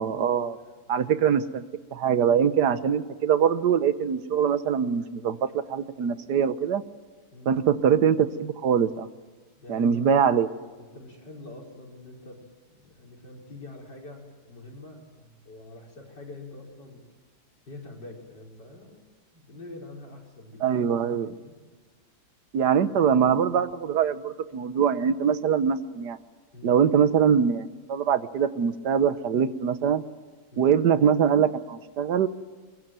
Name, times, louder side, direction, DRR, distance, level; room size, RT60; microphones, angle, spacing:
voice 1, 0.0-0.6 0.9-1.6 1.9-6.8 7.5-9.1 9.7-10.5 20.6-21.3 22.5-26.2 26.6-30.0 30.6-32.3, right 7 dB, 75° right, 13 dB, 1.6 m, -23 dB
voice 2, 0.5-0.8 2.7-2.8 7.3-7.6 9.5-10.2 10.8-17.0 17.7-19.1 19.3-21.6 22.8-23.0 26.5-26.7 30.5-30.8, left 2 dB, 85° left, 0 dB, 5.7 m, -45 dB
22.5 x 22.5 x 9.1 m, 1.4 s
omnidirectional pair, 1.8 m